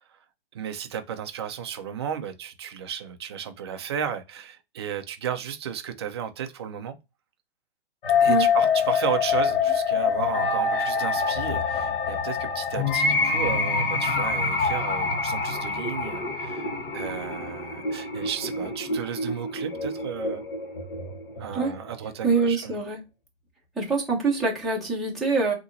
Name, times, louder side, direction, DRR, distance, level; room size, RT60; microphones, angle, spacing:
voice 1, 0.5-7.0 8.2-20.4 21.4-22.8, right 8 dB, 25° right, 0.4 m, -34 dB
sound 1, 8.0-22.0, left 5 dB, 50° left, 1.1 m, -26 dB
voice 2, 22.2-23.0 23.8-25.5, right 4 dB, ahead, 0.7 m, -24 dB
3.9 x 2.9 x 2.5 m
hypercardioid pair, 145°, 33 cm